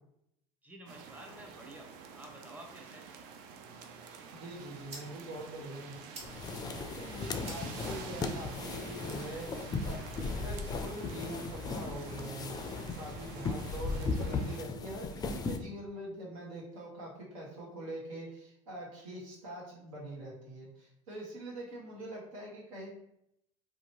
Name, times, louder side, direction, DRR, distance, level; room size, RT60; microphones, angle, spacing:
voice 1, 0.6-3.1, equal, 10° right, 1 dB, 0.7 m, -51 dB
alley winter drippy +church bells Verdun Montreal Canada, 0.9-14.6, right 6 dB, 65° right, 0.4 m, -49 dB
sound 1, 4.3-10.3, right 2 dB, 40° right, 0.9 m, -55 dB
voice 2, 4.3-9.5 9.8-12.5 12.9-22.9, right 1 dB, 85° right, -3 dB, 1.0 m, -44 dB
sound 2, 6.2-15.6, left 3 dB, 25° left, 0.3 m, -37 dB
2.8 x 2.3 x 2.9 m, 0.78 s
supercardioid pair, 90°, 16 cm